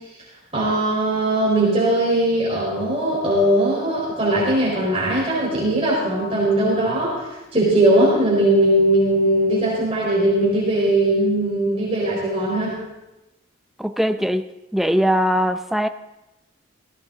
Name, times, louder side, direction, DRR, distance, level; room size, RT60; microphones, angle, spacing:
voice 1, 0.5-12.8, right 1 dB, 30° right, -6 dB, 4.4 m, -19 dB
voice 2, 13.8-15.9, equal, ahead, 8 dB, 0.5 m, -21 dB
17.0 x 16.0 x 3.9 m, 1.0 s
head